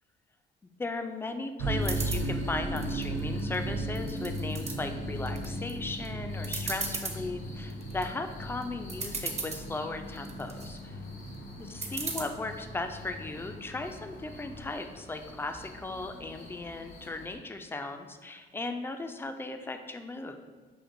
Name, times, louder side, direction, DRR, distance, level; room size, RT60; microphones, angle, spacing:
voice 1, 0.8-11.0 11.6-20.4, left 2 dB, 10° left, 6 dB, 0.3 m, -37 dB
sound 1, 1.6-17.4, left 1 dB, 80° left, 0.8 m, -50 dB
sound 2, 1.6-14.9, right 1 dB, 85° right, 0.6 m, -36 dB
sound 3, 1.8-2.2 2.8-3.5 3.9-4.7 5.3-5.7 6.0-6.1 6.4-7.2 7.7-8.0 8.6-8.7 8.9-9.6 10.2-10.7 11.8-12.2, right 4 dB, 35° right, 0.6 m, -36 dB
5.8 x 2.5 x 2.6 m, 1.5 s
cardioid pair, 90°, 20 cm